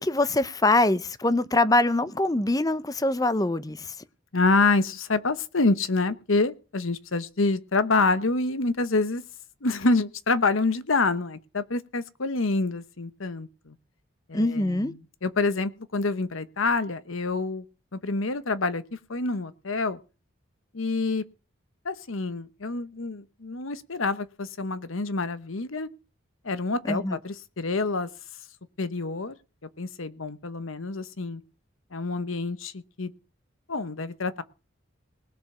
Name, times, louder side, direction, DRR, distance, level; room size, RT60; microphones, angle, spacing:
voice 1, 0.0-4.0 14.3-14.9 26.8-27.2, left 2 dB, 15° left, 0.6 m, -24 dB
voice 2, 4.3-9.2 9.6-13.7 14.3-14.9 15.2-17.7 17.9-20.0 20.7-21.2 21.8-25.9 26.4-28.1 28.8-29.3 29.8-31.4 31.9-33.1 33.7-34.4, left 3 dB, 80° left, 1.0 m, -27 dB
19.5 x 7.1 x 6.0 m
head